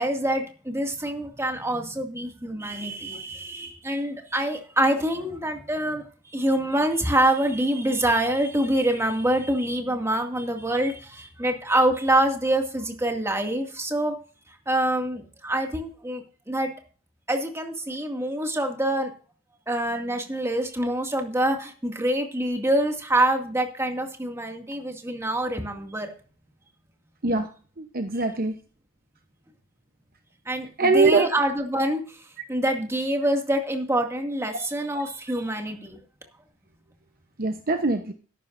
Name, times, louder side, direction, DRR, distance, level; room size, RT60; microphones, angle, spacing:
voice 1, 0.0-14.1 14.7-16.7 17.3-19.1 19.7-26.1 30.5-32.2 32.5-36.0, right 1 dB, 15° right, 3 dB, 2.3 m, -25 dB
voice 2, 27.8-28.5 30.8-31.3 37.4-38.1, right 3 dB, 45° right, 6 dB, 1.0 m, -22 dB
13.5 x 12.0 x 2.6 m, 0.40 s
head